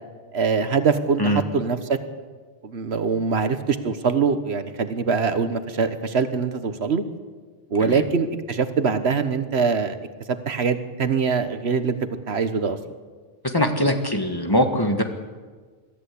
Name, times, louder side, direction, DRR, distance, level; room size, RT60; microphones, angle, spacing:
voice 1, 0.3-2.0 2.6-7.0 7.7-10.0 10.3-12.0 12.3-12.8, right 5 dB, 85° right, 10 dB, 1.5 m, -23 dB
voice 2, 13.5-15.0, equal, 20° left, 5 dB, 1.7 m, -21 dB
22.5 x 13.5 x 8.6 m, 1.5 s
omnidirectional pair, 1.1 m